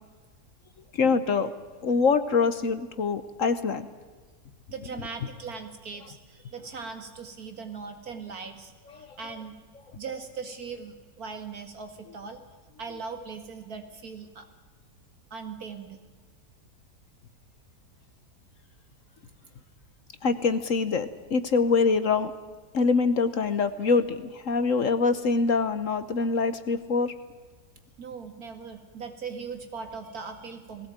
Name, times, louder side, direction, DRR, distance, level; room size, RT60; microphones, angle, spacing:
voice 1, 0.9-1.5 1.8-3.9 9.0-9.1 20.2-22.3 22.7-27.1, left 4 dB, 55° left, 12 dB, 1.3 m, -24 dB
voice 2, 4.7-9.6 9.9-12.4 12.8-14.5 15.3-16.0 28.0-30.9, right 5 dB, 60° right, 6 dB, 2.6 m, -39 dB
19.5 x 17.5 x 8.9 m, 1.4 s
omnidirectional pair, 1.8 m